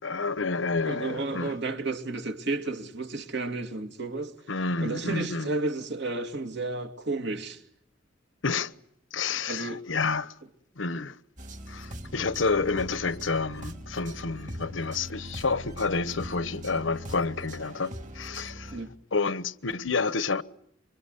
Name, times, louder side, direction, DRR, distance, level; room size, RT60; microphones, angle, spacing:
voice 1, 0.0-1.5 4.5-5.5 8.4-8.7 9.1-10.3 10.8-11.1 11.7-18.8 19.1-20.4, left 4 dB, 90° left, 1.2 m, -29 dB
voice 2, 0.8-4.3 4.8-7.6 9.5-9.8 18.7-18.9, right 3 dB, 65° right, 2.5 m, -32 dB
sound 1, 11.4-18.8, equal, 40° right, 3.7 m, -41 dB
26.5 x 24.5 x 8.2 m
head